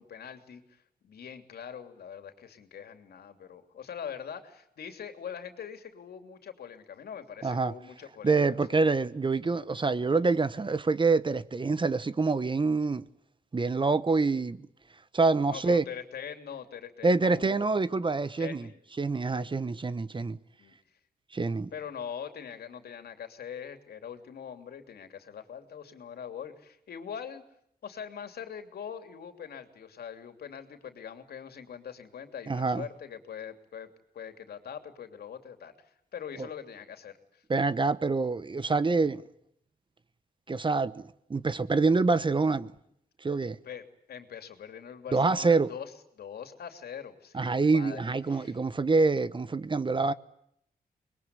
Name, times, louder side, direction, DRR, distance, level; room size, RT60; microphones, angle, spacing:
voice 1, 0.0-8.6 15.5-17.7 18.4-18.8 19.3-19.7 20.6-20.7 21.7-27.4 27.8-33.9 34.1-37.4 43.6-48.0 48.3-48.6, left 8 dB, 80° left, 3.0 m, -43 dB
voice 2, 7.4-7.7 8.2-13.1 13.5-14.6 15.1-15.8 17.0-18.7 19.0-20.4 21.3-21.7 32.5-32.8 37.5-39.2 40.5-41.0 41.3-42.7 43.2-43.6 45.1-45.7 47.3-50.1, right 3 dB, 30° right, 1.1 m, -26 dB
24.5 x 21.5 x 9.7 m
cardioid pair, 75°, 16 cm